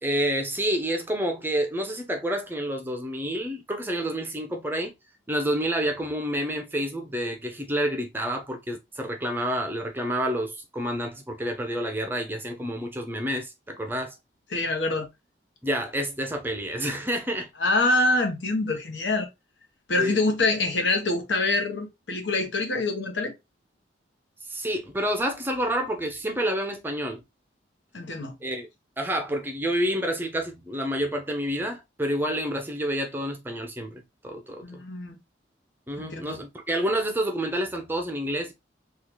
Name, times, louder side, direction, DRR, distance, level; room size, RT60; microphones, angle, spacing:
voice 1, 0.0-4.9 5.3-14.2 15.6-17.5 20.0-20.2 24.4-27.2 28.4-28.7 29.0-34.8 35.9-38.5, equal, 10° right, 0.5 m, -29 dB
voice 2, 14.5-15.1 17.6-19.3 19.9-23.3 27.9-28.4 34.6-35.2 36.0-36.4, left 2 dB, 80° left, 1.0 m, -25 dB
3.6 x 2.4 x 3.0 m
head